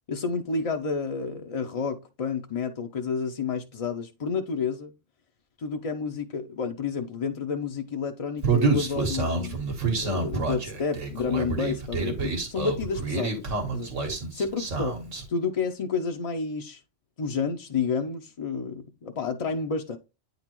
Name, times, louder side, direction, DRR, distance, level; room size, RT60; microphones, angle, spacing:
voice 1, 0.1-4.9 5.6-9.6 10.0-13.9 14.4-14.9 15.3-16.8 17.2-20.0, left 5 dB, 50° left, 0.4 m, -30 dB
Human voice, 8.4-15.2, right 4 dB, 85° right, 1.8 m, -28 dB
8.8 x 4.0 x 3.0 m
omnidirectional pair, 1.3 m